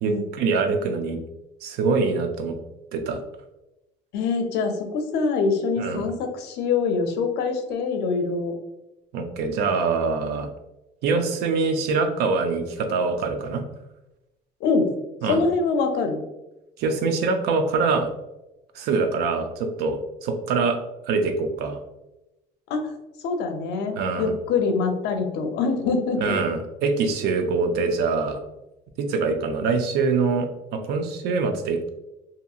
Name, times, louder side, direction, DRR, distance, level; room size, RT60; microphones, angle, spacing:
voice 1, 0.0-1.2 1.6-2.6 2.9-3.2 5.8-6.1 9.1-10.5 11.0-13.6 15.2-15.4 16.8-18.1 18.7-20.8 21.1-21.8 23.9-24.3 26.2-28.4 29.0-31.9, right 4 dB, 65° right, 7 dB, 0.4 m, -24 dB
voice 2, 4.1-8.5 14.6-14.9 15.3-16.2 22.7-22.9 23.2-26.4, left 4 dB, 70° left, 5 dB, 0.5 m, -24 dB
2.7 x 2.7 x 2.3 m, 0.95 s
cardioid pair, 155°, 18 cm